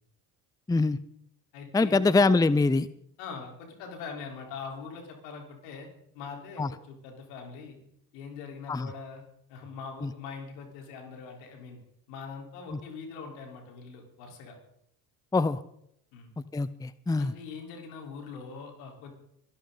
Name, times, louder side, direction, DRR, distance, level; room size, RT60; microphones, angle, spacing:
voice 1, 0.7-1.0 1.7-2.9 6.6-6.7 8.7-8.9 10.0-10.1 15.3-15.6 16.5-17.3, left 3 dB, 10° left, 17 dB, 0.6 m, -24 dB
voice 2, 1.5-2.2 3.2-5.9 6.1-7.8 8.1-9.2 9.5-11.8 12.1-14.5 16.1-16.3 17.2-19.1, left 5 dB, 80° left, 2 dB, 4.3 m, -42 dB
24.0 x 11.5 x 4.0 m, 0.70 s
hypercardioid pair, 60°, 48 cm